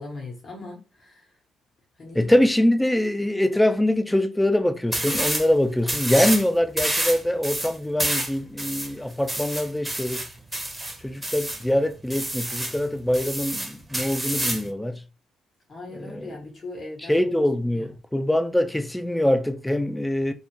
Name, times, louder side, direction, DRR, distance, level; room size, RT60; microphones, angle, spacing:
voice 1, 0.0-1.4 2.0-2.3 15.7-17.3 17.7-17.9, left 2 dB, 40° left, 0.9 m, -39 dB
voice 2, 2.1-10.3 11.0-15.0 16.0-16.3 17.1-20.3, left 1 dB, 5° left, 0.3 m, -23 dB
sound 1, 4.9-5.5 5.8-6.5 6.8-11.6 12.1-12.8 13.1-14.7, right 1 dB, 10° right, 0.7 m, -28 dB
2.4 x 2.1 x 3.0 m
cardioid pair, 90°, 0 cm